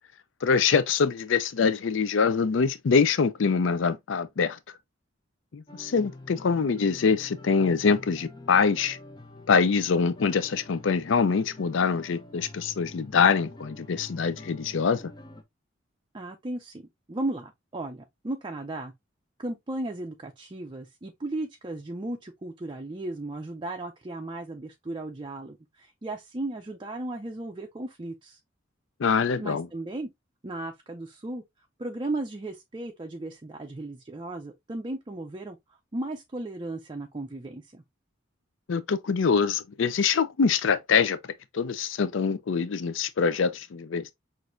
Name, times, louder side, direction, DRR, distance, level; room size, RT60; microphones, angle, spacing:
voice 1, 0.4-4.6 5.5-9.0 9.5-15.1 29.0-29.7 38.7-41.2 41.5-44.1, left 5 dB, 70° left, 0.5 m, -24 dB
sound 1, 5.7-15.4, left 2 dB, 20° left, 0.6 m, -47 dB
voice 2, 16.1-16.8 17.1-18.9 19.4-28.4 29.4-30.1 30.4-31.4 31.8-35.6 35.9-37.8, right 2 dB, 25° right, 0.5 m, -35 dB
6.1 x 2.6 x 2.5 m
head